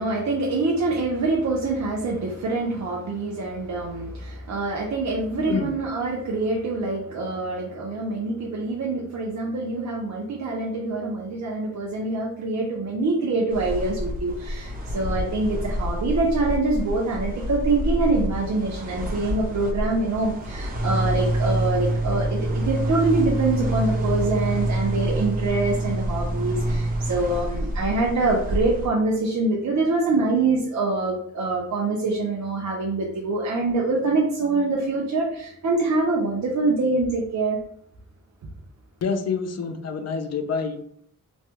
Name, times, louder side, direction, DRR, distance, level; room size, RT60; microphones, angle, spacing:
voice 1, 0.0-37.6, right 3 dB, 55° right, -2 dB, 0.6 m, -25 dB
voice 2, 5.4-5.7 39.0-40.8, left 5 dB, 50° left, 8 dB, 0.5 m, -27 dB
sound 1, 13.5-28.9, right 1 dB, 25° right, 0.8 m, -27 dB
3.1 x 2.2 x 2.8 m, 0.65 s
wide cardioid pair, 85°, 33 cm